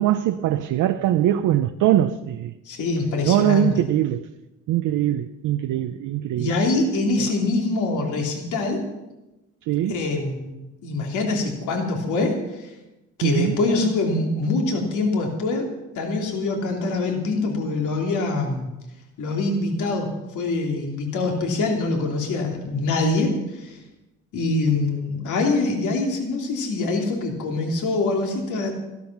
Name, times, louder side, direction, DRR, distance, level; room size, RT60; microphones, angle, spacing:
voice 1, 0.0-2.5 3.3-4.3 4.7-6.5 9.7-10.0 13.2-13.6, right 12 dB, 85° right, 0.7 m, -22 dB
voice 2, 2.6-3.8 6.4-8.8 9.9-10.5 10.8-12.7 13.2-15.7 15.9-18.7 19.2-23.8 24.3-28.7, left 3 dB, 80° left, 3.0 m, -24 dB
14.5 x 12.0 x 6.0 m
cardioid pair, 90°, 30 cm